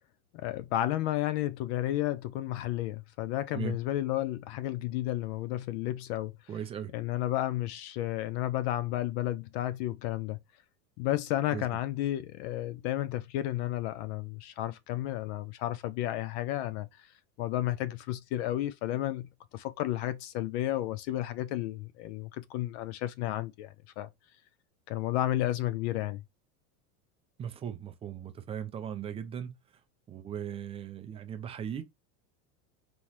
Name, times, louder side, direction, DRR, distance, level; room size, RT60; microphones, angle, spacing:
voice 1, 0.3-6.4 6.9-10.4 11.0-17.1 17.4-24.1 24.9-26.2, left 14 dB, 50° left, 0.5 m, -32 dB
voice 2, 6.5-6.9 11.5-11.6 27.4-29.5 30.1-31.8, right 9 dB, 15° right, 0.3 m, -38 dB
5.5 x 3.0 x 3.1 m
supercardioid pair, 150°, 43 cm